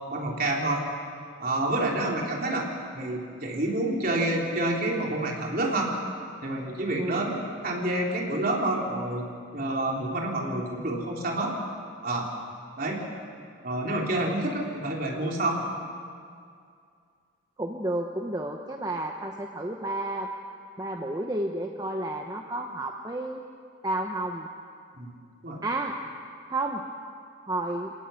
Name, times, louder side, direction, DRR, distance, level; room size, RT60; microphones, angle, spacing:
voice 1, 0.1-0.8 1.4-2.7 2.9-5.9 6.4-11.5 12.0-12.3 12.8-13.0 13.6-15.7 25.0-25.1 25.4-25.6, right 1 dB, 50° right, -1 dB, 3.5 m, -28 dB
voice 2, 7.0-7.3 17.6-20.3 20.8-23.4 23.8-24.5 25.6-26.0 26.5-26.8 27.5-27.9, right 1 dB, 20° right, 2 dB, 1.0 m, -31 dB
26.0 x 18.0 x 7.0 m, 2.3 s
head